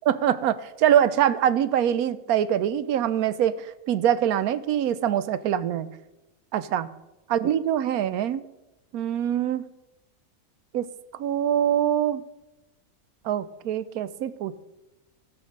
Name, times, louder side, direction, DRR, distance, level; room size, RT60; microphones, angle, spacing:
voice 1, 0.1-5.9 6.5-6.9 7.3-8.4 8.9-9.6 10.7-12.2 13.2-14.5, right 10 dB, 85° right, 14 dB, 1.1 m, -24 dB
14.5 x 5.9 x 6.6 m, 0.98 s
omnidirectional pair, 1.5 m